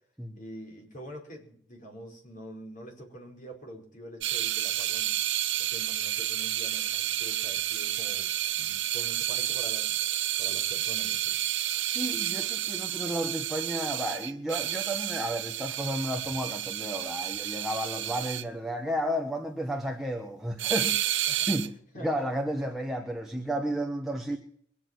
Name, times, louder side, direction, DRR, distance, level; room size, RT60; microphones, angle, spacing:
voice 1, 0.3-5.1 5.6-11.4 21.3-21.5 21.9-22.1, equal, 45° left, 5.1 m, -46 dB
sound 1, 4.2-18.4 20.6-21.7, right 12 dB, 70° right, 0.9 m, -30 dB
voice 2, 11.7-21.7 22.0-24.4, equal, ahead, 1.2 m, -32 dB
22.5 x 8.5 x 6.1 m
head